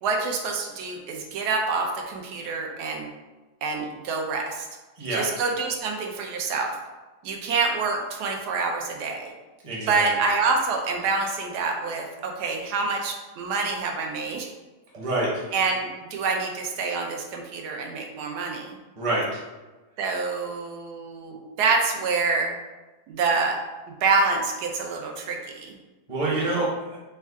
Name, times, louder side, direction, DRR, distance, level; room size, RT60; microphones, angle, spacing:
voice 1, 0.0-3.1 3.6-4.7 5.1-6.7 7.2-9.3 9.9-14.5 15.5-18.8 20.0-22.5 23.1-23.6 24.0-25.7 26.3-26.5, right 4 dB, 90° right, 2 dB, 1.1 m, -27 dB
voice 2, 9.6-10.0 14.9-15.4 19.0-19.4 26.1-27.0, right 2 dB, 30° right, -5 dB, 0.7 m, -26 dB
3.5 x 2.2 x 3.4 m, 1.2 s
omnidirectional pair, 1.7 m